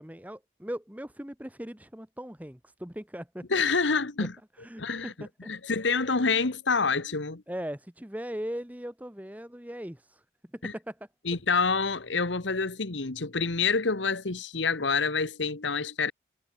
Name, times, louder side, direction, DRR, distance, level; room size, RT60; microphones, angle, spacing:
voice 1, 0.0-3.6 4.6-5.5 7.5-10.2 10.5-11.0, equal, 10° right, 1.1 m, -39 dB
voice 2, 3.5-4.3 4.8-7.4 10.6-10.7 11.2-16.1, left 4 dB, 90° left, 1.5 m, -27 dB
head